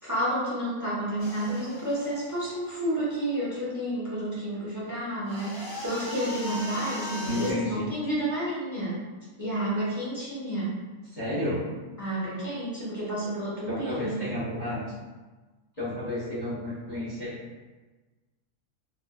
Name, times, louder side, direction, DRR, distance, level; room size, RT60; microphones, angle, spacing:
voice 1, 0.0-9.1 9.4-10.7 11.4-11.5 12.0-14.3, right 1 dB, 20° right, -9 dB, 0.5 m, -30 dB
sound 1, 1.2-3.2 5.2-7.5, equal, 50° left, 1.5 m, -39 dB
voice 2, 7.2-7.9 11.1-11.7 13.7-14.8 15.8-17.3, left 1 dB, 30° left, -8 dB, 0.8 m, -31 dB
4.1 x 2.4 x 2.3 m, 1.3 s
omnidirectional pair, 1.7 m